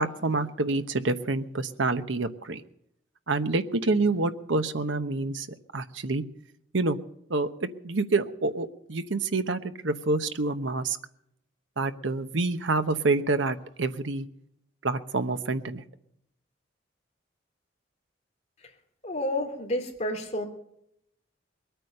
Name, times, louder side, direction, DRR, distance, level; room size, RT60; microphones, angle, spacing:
voice 1, 0.0-2.6 3.3-5.5 5.7-6.2 6.7-7.0 7.3-11.0 11.8-14.3 14.8-15.8, right 3 dB, 80° right, 10 dB, 1.0 m, -27 dB
voice 2, 19.0-20.4, left 1 dB, 35° left, 1 dB, 3.0 m, -30 dB
22.0 x 9.1 x 6.6 m, 0.75 s
head